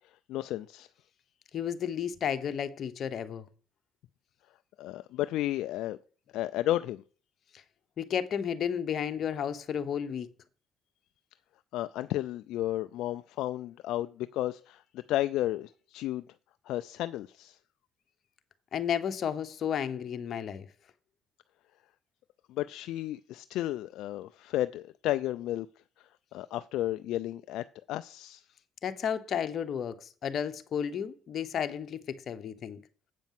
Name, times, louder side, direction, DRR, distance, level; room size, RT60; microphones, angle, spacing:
voice 1, 0.3-0.9 4.8-6.0 6.3-7.0 11.7-16.3 16.7-17.6 22.5-25.7 26.3-28.4, left 14 dB, 75° left, 0.4 m, -33 dB
voice 2, 1.5-3.5 8.0-10.3 18.7-20.7 28.8-32.8, left 8 dB, 55° left, 1.1 m, -32 dB
8.4 x 5.2 x 7.5 m
supercardioid pair, 85°, 0 cm